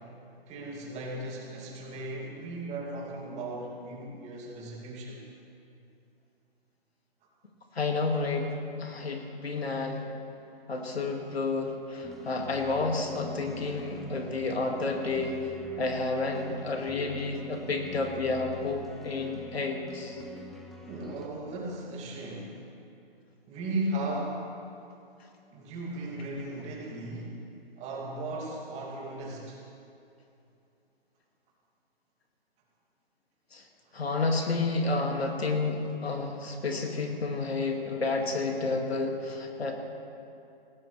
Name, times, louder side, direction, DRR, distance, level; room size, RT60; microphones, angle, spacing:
voice 1, 0.5-5.3 20.9-22.6 23.5-24.4 25.5-27.3 27.8-29.6, right 1 dB, 20° right, -2 dB, 2.5 m, -36 dB
voice 2, 7.8-10.0 10.7-15.4 15.8-20.2 33.5-33.6 33.9-39.7, left 3 dB, 85° left, 2 dB, 2.3 m, -30 dB
sound 1, 12.0-21.3, left 1 dB, ahead, 0.5 m, -45 dB
19.5 x 17.5 x 3.4 m, 2.7 s
hypercardioid pair, 135°, 30 cm